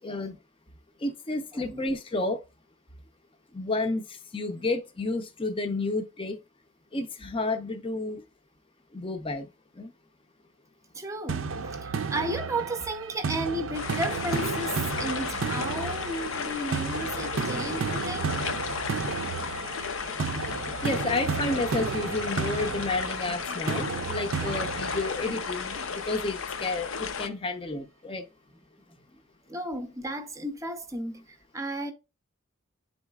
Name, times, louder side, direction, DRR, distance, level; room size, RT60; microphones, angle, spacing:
voice 1, 0.0-0.4 1.0-2.4 3.5-4.1 4.3-6.4 6.9-8.2 8.9-9.5 9.8-9.9 20.8-25.8 26.1-28.3, left 2 dB, 25° left, 0.6 m, -31 dB
voice 2, 10.9-18.3 29.5-31.9, right 1 dB, 15° right, 0.6 m, -34 dB
sound 1, 11.3-26.2, right 5 dB, 65° right, 0.4 m, -33 dB
sound 2, 13.7-27.3, left 6 dB, 65° left, 0.6 m, -34 dB
10.0 x 4.0 x 2.3 m
head